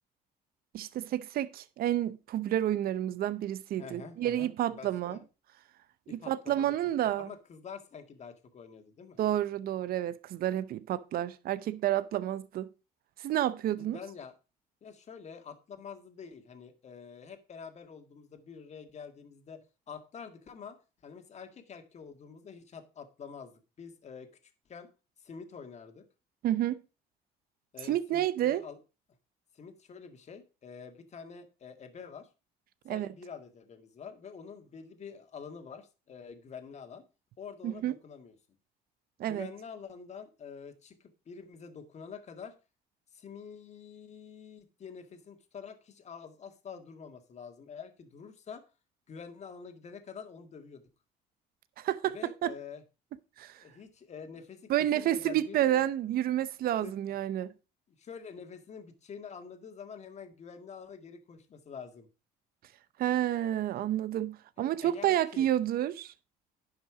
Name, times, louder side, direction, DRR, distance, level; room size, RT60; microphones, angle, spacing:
voice 1, 0.7-5.2 6.1-7.3 9.2-12.7 13.2-14.0 26.4-26.8 27.9-28.6 32.9-33.1 37.6-37.9 39.2-39.5 51.8-52.2 52.4-52.5 53.4-53.6 54.7-57.5 63.0-66.1, right 12 dB, 65° right, 0.7 m, -30 dB
voice 2, 3.8-5.3 6.1-6.7 7.1-9.2 13.7-14.3 14.8-20.8 21.0-24.9 25.2-26.1 27.7-28.8 29.5-32.3 32.9-37.0 37.4-38.4 39.3-42.5 43.1-48.6 49.1-50.8 52.0-52.8 53.6-55.8 56.8-57.0 57.9-62.1 64.6-65.5, left 6 dB, 40° left, 1.9 m, -47 dB
11.0 x 5.7 x 4.9 m
cardioid pair, 110°, 17 cm